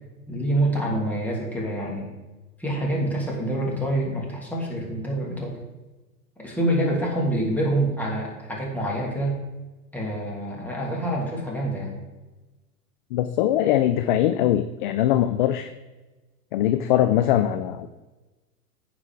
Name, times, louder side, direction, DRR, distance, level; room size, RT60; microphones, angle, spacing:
voice 1, 0.3-2.1 2.6-5.6 6.4-9.4 9.9-12.0, right 1 dB, 5° left, -4 dB, 2.8 m, -26 dB
voice 2, 13.1-15.7 16.5-17.9, left 12 dB, 35° left, 9 dB, 0.4 m, -21 dB
14.5 x 5.0 x 3.7 m, 1.2 s
hypercardioid pair, 105°, 46 cm